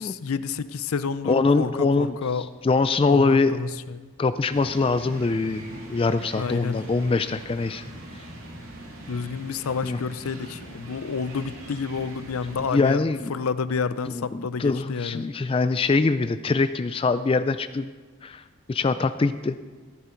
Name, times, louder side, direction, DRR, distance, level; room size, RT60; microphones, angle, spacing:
voice 1, 0.0-2.5 3.1-4.1 6.3-6.8 9.1-13.0 13.3-15.3, left 5 dB, 80° left, 14 dB, 0.5 m, -29 dB
voice 2, 1.3-2.2 2.6-3.6 4.2-7.9 9.8-10.0 12.7-13.4 14.1-17.9 18.2-18.4 18.7-19.6, left 3 dB, 25° left, 12 dB, 0.3 m, -23 dB
sound 1, 4.5-12.7, right 1 dB, 70° right, 2.1 m, -42 dB
16.0 x 10.5 x 4.5 m, 1.4 s
head